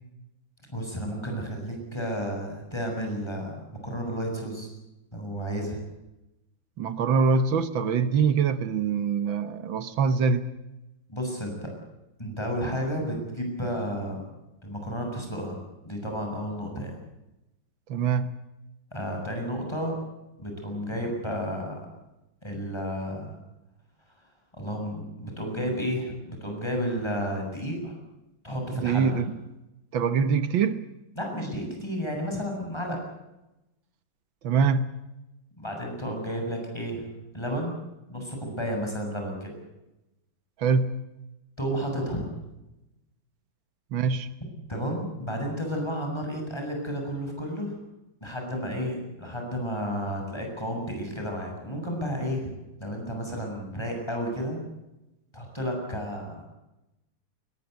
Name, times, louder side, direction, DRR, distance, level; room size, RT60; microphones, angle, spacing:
voice 1, 0.7-4.7 5.1-5.8 11.1-11.7 12.2-14.2 14.6-15.6 15.8-17.0 18.9-19.9 20.4-21.9 22.4-23.4 24.5-28.0 28.4-29.2 31.2-33.0 35.6-37.0 37.3-37.8 38.1-39.5 41.6-42.3 44.7-47.8 48.2-52.5 52.8-54.6 55.3-56.5, equal, 15° left, 2 dB, 7.6 m, -32 dB
voice 2, 6.8-10.5 17.9-18.3 28.8-29.3 29.9-30.8 34.4-34.9 40.6-40.9 43.9-44.3, right 5 dB, 80° right, 12 dB, 1.9 m, -24 dB
21.5 x 20.0 x 8.2 m, 0.95 s
omnidirectional pair, 2.1 m